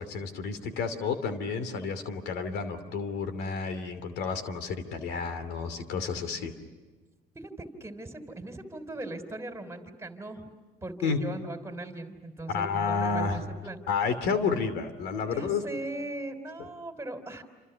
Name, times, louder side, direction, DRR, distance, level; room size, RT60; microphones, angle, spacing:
voice 1, 0.0-6.5 11.0-11.2 12.5-13.4 13.9-15.6, left 5 dB, 80° left, 11 dB, 2.8 m, -30 dB
voice 2, 7.4-10.5 10.8-13.8 15.2-17.4, right 2 dB, 15° right, 7 dB, 3.5 m, -39 dB
28.5 x 27.0 x 7.0 m, 1.3 s
cardioid pair, 110°, 17 cm